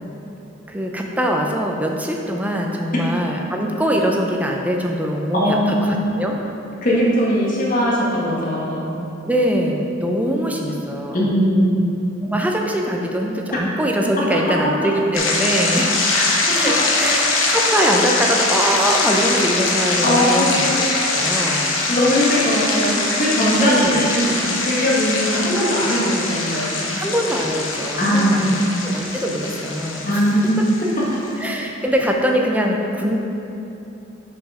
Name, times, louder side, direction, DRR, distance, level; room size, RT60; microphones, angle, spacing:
voice 1, 0.7-6.4 9.3-11.3 12.2-15.9 16.5-21.8 23.6-24.0 27.0-30.2 31.4-33.2, equal, 10° right, 0 dB, 0.6 m, -22 dB
voice 2, 5.3-6.1 6.8-8.9 11.1-11.8 16.5-16.6 20.0-20.9 21.9-26.9 28.0-28.7 30.1-30.7, equal, 45° left, -5 dB, 1.6 m, -19 dB
sound 1, 15.1-31.3, left 3 dB, 85° left, 0.9 m, -22 dB
6.3 x 5.2 x 4.9 m, 2.9 s
head